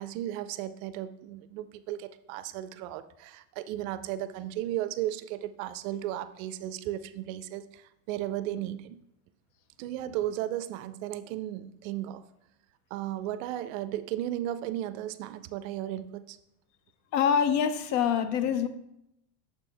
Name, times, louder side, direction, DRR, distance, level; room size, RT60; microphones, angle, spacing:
voice 1, 0.0-9.0 9.8-12.2 12.9-16.4, right 13 dB, 65° right, 12 dB, 0.5 m, -35 dB
voice 2, 17.1-18.7, left 7 dB, 45° left, 11 dB, 0.4 m, -25 dB
6.8 x 4.4 x 3.3 m, 0.83 s
supercardioid pair, 125°, 43 cm